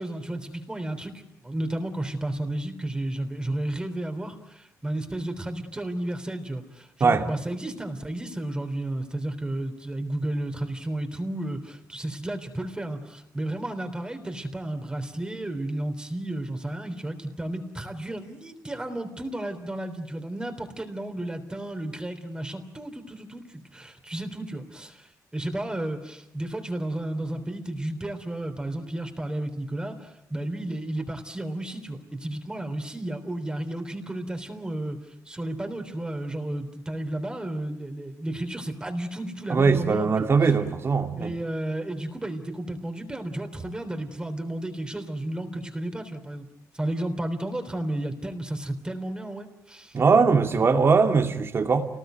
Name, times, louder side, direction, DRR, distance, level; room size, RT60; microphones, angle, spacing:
voice 1, 0.0-40.2 41.2-46.5 46.7-50.0, right 1 dB, 15° right, 3.4 m, -32 dB
voice 2, 39.5-41.3 49.9-51.9, right 5 dB, 40° right, 2.6 m, -21 dB
29.0 x 19.5 x 9.3 m
cardioid pair, 110°, 6 cm